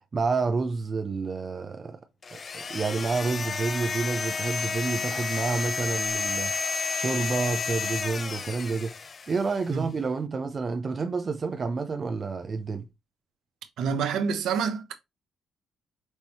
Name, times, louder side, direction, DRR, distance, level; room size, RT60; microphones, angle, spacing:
voice 1, 0.1-2.0 2.3-6.5 6.9-8.9 9.3-12.9, right 4 dB, 40° right, 0.7 m, -29 dB
sound 1, 2.2-9.6, left 5 dB, 40° left, 0.4 m, -31 dB
voice 2, 13.8-14.9, right 6 dB, 80° right, 0.9 m, -27 dB
5.5 x 3.3 x 3.0 m
cardioid pair, 90°, 0 cm